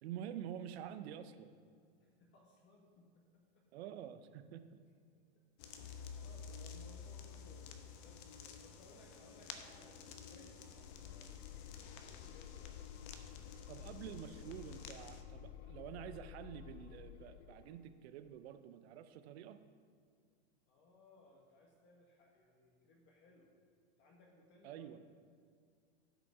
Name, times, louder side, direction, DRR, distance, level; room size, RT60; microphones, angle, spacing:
voice 1, 0.0-1.5 3.7-4.6 13.7-19.6 24.6-25.0, right 10 dB, 70° right, 10 dB, 0.7 m, -48 dB
voice 2, 2.0-3.2 3.5-3.6 5.6-11.4 11.8-12.8 20.7-23.5 24.0-24.9, left 2 dB, 35° left, -1 dB, 1.5 m, -64 dB
sound 1, 5.6-15.2, left 6 dB, 50° left, 0.9 m, -52 dB
sound 2, 10.7-18.0, left 11 dB, 80° left, 0.5 m, -53 dB
12.0 x 5.1 x 4.8 m, 2.1 s
supercardioid pair, 130°, 33 cm